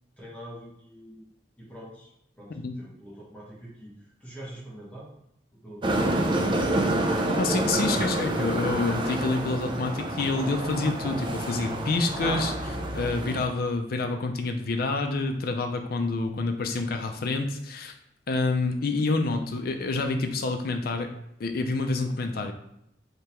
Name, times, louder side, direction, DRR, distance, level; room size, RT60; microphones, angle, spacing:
voice 1, 0.2-1.2 1.6-2.1 2.4-5.1 5.5-6.3, equal, 10° left, -6 dB, 0.9 m, -44 dB
sound 1, 5.8-13.5, right 1 dB, 25° right, 0.3 m, -28 dB
voice 2, 7.4-17.9 18.3-21.1 21.4-22.5, left 3 dB, 55° left, 5 dB, 0.4 m, -28 dB
3.4 x 2.8 x 2.9 m, 0.76 s
head